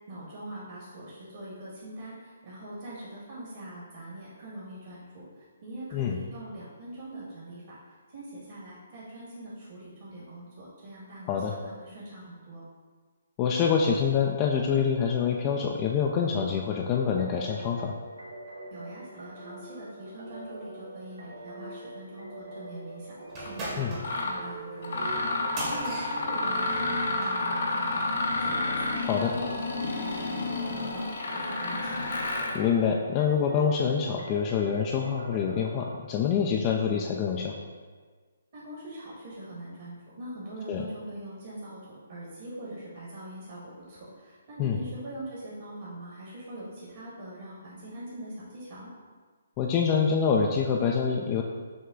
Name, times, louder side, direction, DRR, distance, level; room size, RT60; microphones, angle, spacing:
voice 1, 0.1-7.8 8.1-12.6 18.7-31.1 31.3-32.1 38.5-48.9, right 1 dB, 50° right, -7 dB, 1.5 m, -43 dB
voice 2, 13.4-17.9 23.8-23.9 29.1-29.3 32.5-37.6 40.7-40.8 44.6-44.8 49.6-51.4, left 6 dB, 25° left, 0 dB, 0.3 m, -26 dB
sound 1, 16.9-36.0, right 2 dB, 80° right, 0.8 m, -44 dB
sound 2, 23.3-27.4, right 1 dB, 25° right, 1.0 m, -39 dB
Mechanisms, 23.4-23.5 24.0-24.4 24.8-32.6, left 2 dB, 65° left, 0.8 m, -30 dB
6.2 x 2.2 x 3.7 m, 1.5 s
hypercardioid pair, 150°, 0 cm